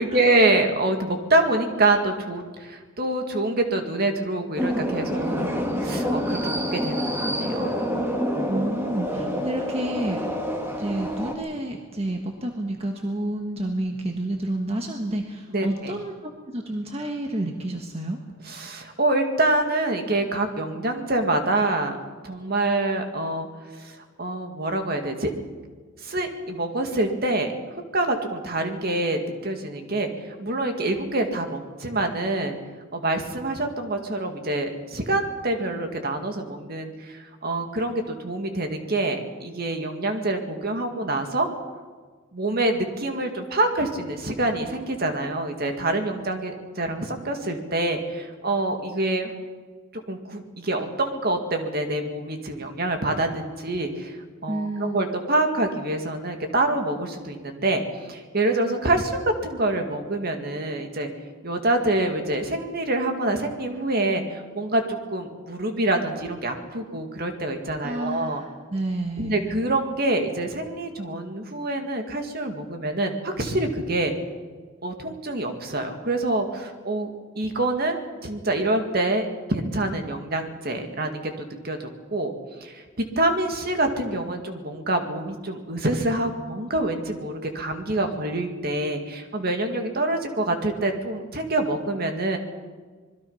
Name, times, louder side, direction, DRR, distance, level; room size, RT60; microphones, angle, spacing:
voice 1, 0.0-7.7 9.2-9.4 15.5-15.9 18.5-22.0 22.2-23.5 23.7-25.3 26.0-32.6 32.9-41.5 42.3-49.3 50.1-61.1 61.4-68.4 69.2-74.1 74.8-82.3 82.6-92.4, right 2 dB, 50° right, 5 dB, 2.3 m, -26 dB
sound 1, 4.6-11.4, equal, 10° right, 2.3 m, -27 dB
voice 2, 8.5-10.2 10.8-18.2 54.5-55.2 67.8-69.5, right 1 dB, 30° right, 3 dB, 1.5 m, -30 dB
26.0 x 21.0 x 5.7 m, 1.5 s
head